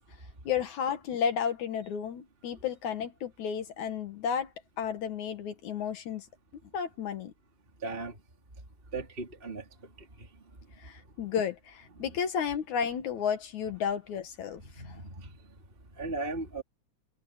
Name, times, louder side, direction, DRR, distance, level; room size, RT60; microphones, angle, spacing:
voice 1, 0.4-6.3 6.7-7.3 10.8-15.0, left 7 dB, 65° left, 2.7 m, -32 dB
voice 2, 7.8-8.2 8.9-9.6 10.2-10.3 14.6-15.3 16.0-16.6, right 3 dB, 15° right, 3.4 m, -37 dB
omnidirectional pair, 3.8 m